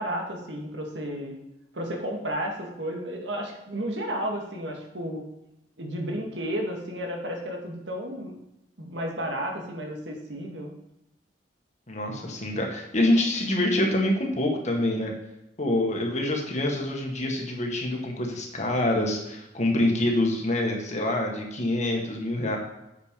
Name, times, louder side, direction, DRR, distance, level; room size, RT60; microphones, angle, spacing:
voice 1, 0.0-1.3 1.7-5.2 5.8-8.3 8.8-10.7, equal, 85° right, 2 dB, 1.9 m, -32 dB
voice 2, 11.9-15.1 15.6-22.6, left 1 dB, 40° left, 1 dB, 1.8 m, -26 dB
8.9 x 5.9 x 5.2 m, 0.91 s
head